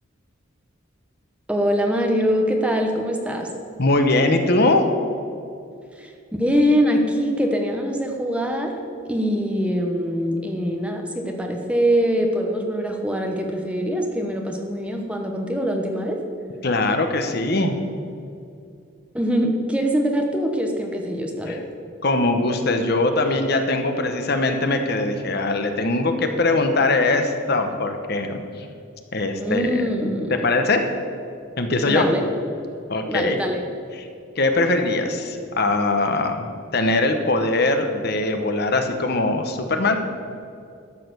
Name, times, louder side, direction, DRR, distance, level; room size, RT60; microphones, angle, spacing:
voice 1, 1.5-3.5 5.9-6.1 6.4-8.7 9.0-16.2 19.1-21.6 29.4-30.4 31.8-32.2 33.1-33.6, equal, 5° right, 2 dB, 0.9 m, -23 dB
voice 2, 3.8-4.8 16.6-17.7 21.5-21.6 22.0-28.7 29.1-30.8 31.6-32.1 32.9-33.4 33.9-34.1 34.4-40.0, left 2 dB, 50° left, 6 dB, 0.9 m, -21 dB
12.5 x 6.7 x 6.7 m, 2.4 s
head